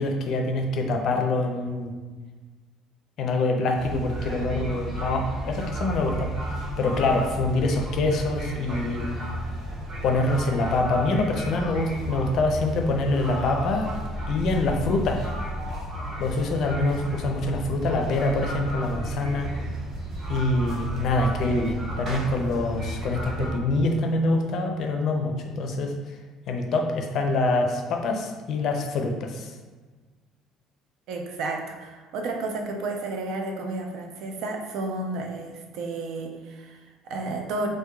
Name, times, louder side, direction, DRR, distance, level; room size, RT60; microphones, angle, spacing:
voice 1, 0.0-1.9 3.2-6.3 6.8-9.1 10.0-13.9 14.3-15.2 16.2-19.5 20.3-25.9 26.5-29.5, left 2 dB, 55° left, 3 dB, 0.4 m, -25 dB
sound 1, 3.7-23.5, right 1 dB, 40° right, 1.1 m, -33 dB
voice 2, 31.1-37.7, right 2 dB, 70° right, 3 dB, 0.5 m, -32 dB
4.5 x 2.1 x 2.3 m, 1.4 s
cardioid pair, 130°, 0 cm